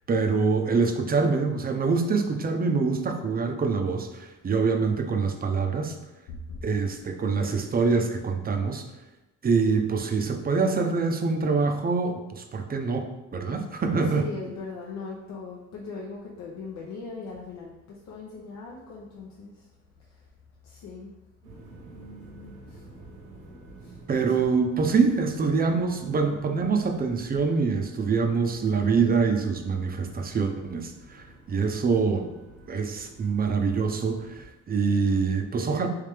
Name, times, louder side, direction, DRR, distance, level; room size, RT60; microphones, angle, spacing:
voice 1, 0.1-6.0 6.6-8.8 9.4-14.3 24.1-32.3 32.7-35.9, right 4 dB, 30° right, 5 dB, 0.5 m, -25 dB
voice 2, 6.3-6.7 14.1-19.6 20.6-21.1 22.7-22.8 23.8-23.9 32.1-32.2, left 4 dB, 70° left, -2 dB, 0.6 m, -39 dB
sound 1, 21.4-34.4, right 2 dB, 85° right, 1.2 m, -49 dB
3.3 x 3.2 x 3.3 m, 0.99 s
cardioid pair, 90°, 30 cm